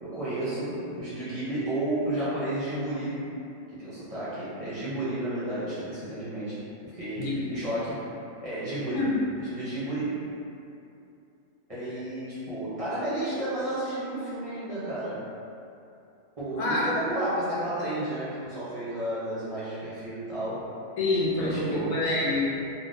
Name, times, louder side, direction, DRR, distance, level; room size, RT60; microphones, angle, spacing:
voice 1, 0.0-3.2 3.7-8.1 8.4-10.2 11.7-15.2 16.4-20.7 21.4-22.0, right 1 dB, 30° right, -13 dB, 0.8 m, -32 dB
voice 2, 7.2-7.7 8.9-9.2 16.5-16.9 21.0-22.4, left 2 dB, 80° left, -6 dB, 1.1 m, -27 dB
3.7 x 2.2 x 2.6 m, 2.7 s
omnidirectional pair, 1.4 m